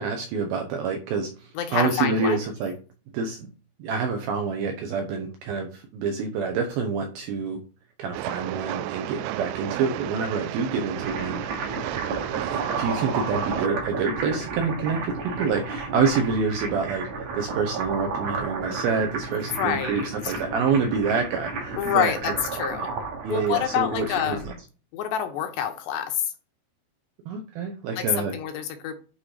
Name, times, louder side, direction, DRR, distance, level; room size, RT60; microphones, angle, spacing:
voice 1, 0.0-2.7 3.1-3.5 3.8-7.6 8.0-11.7 12.4-17.1 17.4-22.3 23.2-24.4 27.3-28.3, right 5 dB, 75° right, 2.3 m, -27 dB
voice 2, 1.5-2.4 19.5-20.3 21.8-22.9 23.3-24.4 24.9-26.3 27.9-29.0, left 10 dB, 80° left, 2.8 m, -27 dB
Train, 8.1-13.7, right 15 dB, 90° right, 3.0 m, -33 dB
sound 1, 10.8-24.6, right 4 dB, 60° right, 2.2 m, -32 dB
8.7 x 3.8 x 5.0 m
omnidirectional pair, 5.4 m